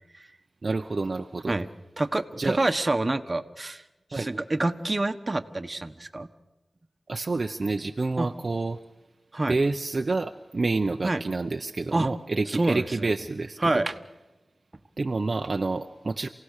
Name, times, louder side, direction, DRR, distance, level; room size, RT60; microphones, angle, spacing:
voice 1, 0.6-1.5 2.4-2.6 4.1-4.3 7.1-8.8 9.5-13.6 15.0-16.3, right 3 dB, 55° right, 5 dB, 0.8 m, -28 dB
voice 2, 2.0-3.8 4.1-6.3 8.2-8.3 9.3-9.5 11.0-11.2 11.9-12.1 12.5-13.1 13.6-14.0, right 2 dB, 35° right, 8 dB, 1.3 m, -27 dB
28.0 x 17.5 x 6.6 m, 1.1 s
cardioid pair, 55°, 0 cm